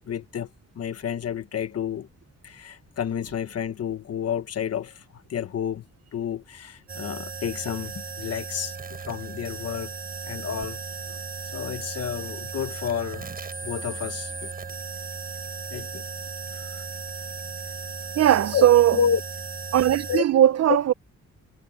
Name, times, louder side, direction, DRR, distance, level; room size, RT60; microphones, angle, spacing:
voice 1, 0.1-0.5 0.7-2.1 2.4-5.0 5.3-5.8 6.1-8.8 9.1-9.9 10.3-10.8 11.5-13.3 13.6-14.5 15.7-16.0 16.7-16.8 18.5-19.2 20.1-20.2 20.7-20.8, left 8 dB, 55° left, 1.3 m, -30 dB
sound 1, 6.9-20.2, right 4 dB, 30° right, 7.1 m, -36 dB
voice 2, 18.2-19.0 19.7-20.8, right 11 dB, 60° right, 0.6 m, -18 dB
wide cardioid pair, 140°, 29 cm